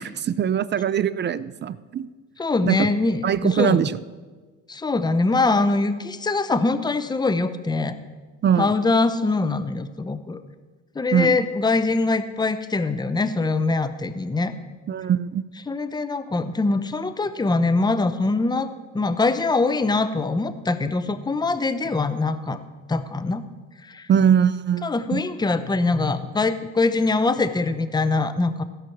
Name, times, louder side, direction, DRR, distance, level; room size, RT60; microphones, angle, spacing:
voice 1, 0.0-2.1 2.6-2.9 3.2-3.9 8.4-8.7 11.1-11.4 14.9-15.4 24.1-25.2, right 8 dB, 30° right, 17 dB, 0.5 m, -21 dB
voice 2, 2.4-3.8 4.7-7.9 8.6-10.4 10.9-14.5 15.7-18.7 18.9-22.6 22.9-23.4 23.8-24.1 24.8-28.6, left 3 dB, 10° left, 11 dB, 0.8 m, -23 dB
15.5 x 5.8 x 7.2 m, 1.4 s
supercardioid pair, 80°, 35 cm